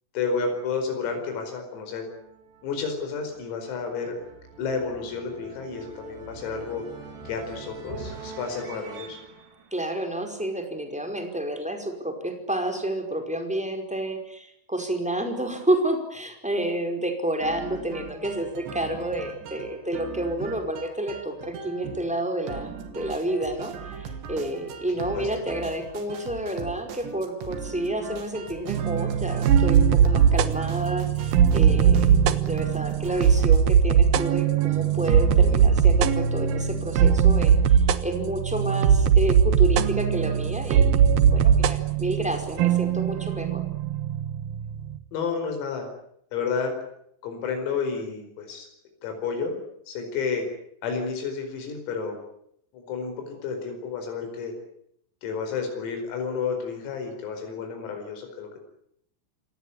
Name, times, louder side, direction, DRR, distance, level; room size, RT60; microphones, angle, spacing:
voice 1, 0.2-2.1 2.6-4.2 4.6-6.9 7.3-9.2 25.2-25.3 45.1-45.9 46.3-46.7 47.2-48.7 49.0-50.4 50.8-52.2 52.7-54.6 55.2-58.6, left 5 dB, 90° left, 5 dB, 7.5 m, -31 dB
sound 1, 1.7-10.8, right 4 dB, 45° right, 4.8 m, -45 dB
voice 2, 9.7-43.6, right 1 dB, ahead, 4 dB, 4.2 m, -30 dB
sound 2, 17.4-33.6, right 5 dB, 60° right, 4.8 m, -40 dB
sound 3, 28.7-45.0, right 7 dB, 75° right, 2.1 m, -20 dB
27.0 x 18.5 x 9.8 m, 0.73 s
omnidirectional pair, 5.9 m